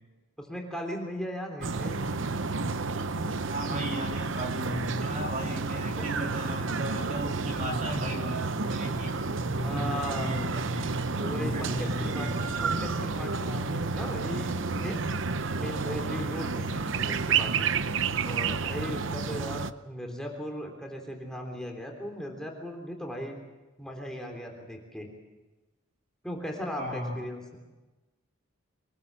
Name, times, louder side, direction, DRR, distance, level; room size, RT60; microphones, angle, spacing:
voice 1, 0.4-2.1 6.0-6.1 9.3-10.4 11.1-12.3 12.6-15.0 15.5-17.7 18.2-23.4 23.8-25.1 26.2-27.6, equal, 5° left, 1 dB, 3.4 m, -37 dB
sound 1, 1.6-19.7, right 4 dB, 60° right, 0.8 m, -30 dB
voice 2, 3.5-8.4 8.7-9.2 9.5-11.0 11.4-13.0 26.7-27.3, equal, 35° right, 1 dB, 3.2 m, -36 dB
24.0 x 20.5 x 7.4 m, 1.1 s
head